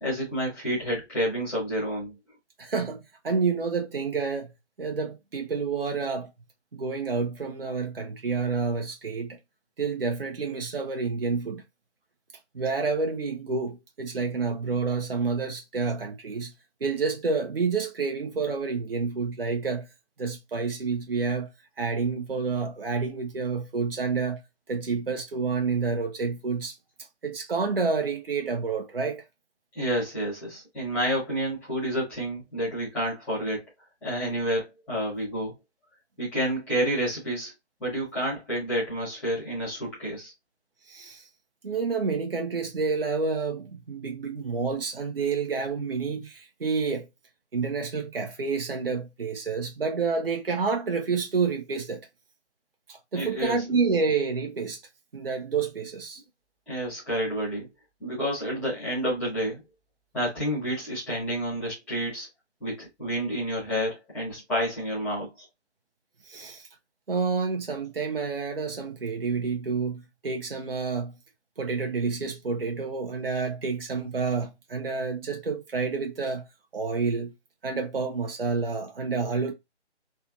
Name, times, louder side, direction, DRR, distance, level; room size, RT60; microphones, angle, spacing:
voice 1, 0.0-2.1 29.7-33.6 34.0-35.5 36.2-37.5 37.8-40.3 53.1-53.7 56.7-57.7 58.0-59.6 60.1-62.3 62.6-65.4, equal, 5° left, 1.5 m, -29 dB
voice 2, 2.6-4.5 4.8-6.3 6.7-9.4 9.8-11.6 12.5-16.5 16.8-19.9 20.2-21.5 21.8-24.4 24.7-26.8 27.2-29.2 40.9-41.3 41.6-47.1 47.5-52.1 52.9-54.8 55.1-56.2 66.2-66.7 67.1-71.2 71.6-76.5 76.7-77.3 77.6-79.5, right 4 dB, 55° right, 0.8 m, -29 dB
3.3 x 3.0 x 2.5 m
figure-of-eight pair, 150°, 35 cm